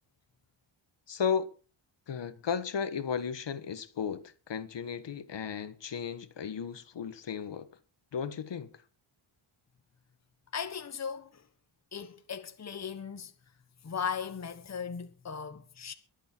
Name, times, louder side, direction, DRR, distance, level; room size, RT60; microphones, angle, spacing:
voice 1, 1.1-1.5 2.1-7.7 8.1-8.7, left 7 dB, 55° left, 1.4 m, -34 dB
voice 2, 10.5-11.4 11.9-13.3 13.8-15.9, left 7 dB, 30° left, 1.3 m, -37 dB
23.0 x 8.5 x 4.5 m
wide cardioid pair, 120°, 50 cm